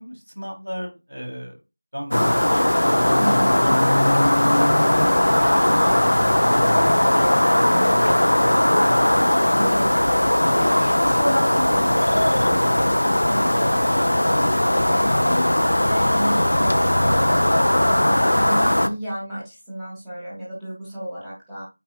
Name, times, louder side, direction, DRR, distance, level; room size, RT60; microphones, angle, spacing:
voice 1, 0.0-1.6 1.9-5.1 5.4-6.6 7.1-8.4 12.6-12.7, equal, 75° right, 1 dB, 3.8 m, -37 dB
sound 1, 2.1-18.9, left 1 dB, 60° left, 0.8 m, -18 dB
voice 2, 3.1-3.8 7.7-7.9 9.1-12.9 13.3-15.5 15.8-21.6, equal, 5° right, -11 dB, 1.6 m, -32 dB
8.5 x 5.5 x 2.4 m, 0.25 s
figure-of-eight pair, 175°, 0 cm